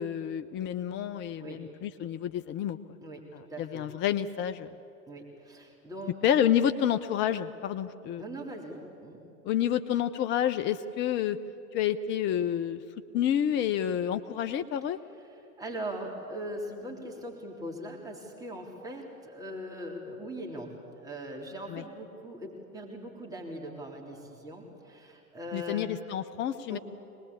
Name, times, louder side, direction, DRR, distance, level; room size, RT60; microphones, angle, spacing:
voice 1, 0.0-2.8 3.3-4.7 6.2-8.2 9.4-11.4 11.7-12.8 13.1-15.0 21.7-21.8 25.5-26.8, left 10 dB, 25° left, 10 dB, 0.5 m, -29 dB
voice 2, 3.0-3.9 5.1-6.2 8.2-9.2 15.6-25.9 26.7-26.8, equal, 10° right, -1 dB, 3.5 m, -40 dB
24.0 x 20.0 x 8.5 m, 2.8 s
figure-of-eight pair, 85°, 45 cm